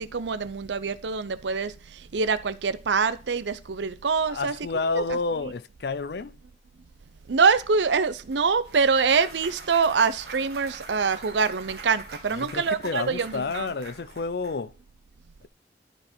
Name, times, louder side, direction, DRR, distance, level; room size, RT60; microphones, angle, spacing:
voice 1, 0.0-1.7 2.1-4.5 4.9-5.0 7.3-13.7, right 5 dB, 85° right, 0.6 m, -24 dB
voice 2, 4.3-6.3 12.3-14.7, left 3 dB, 65° left, 0.5 m, -30 dB
Clapping / Cheering / Applause, 8.3-14.5, right 4 dB, 65° right, 1.8 m, -44 dB
12.5 x 4.5 x 4.4 m
head